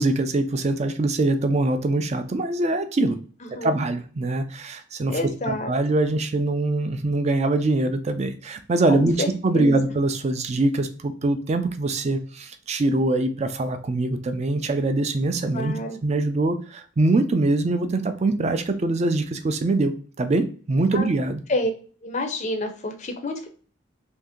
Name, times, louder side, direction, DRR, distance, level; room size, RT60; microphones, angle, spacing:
voice 1, 0.0-3.2 3.6-5.2 5.5-9.2 9.4-15.7 16.0-21.4, right 2 dB, 30° right, 8 dB, 0.3 m, -23 dB
voice 2, 5.1-5.7 8.9-9.8 15.5-16.0 20.9-21.1 21.5-21.7 22.0-23.5, left 1 dB, 35° left, 5 dB, 0.5 m, -28 dB
2.8 x 2.6 x 3.5 m, 0.41 s
head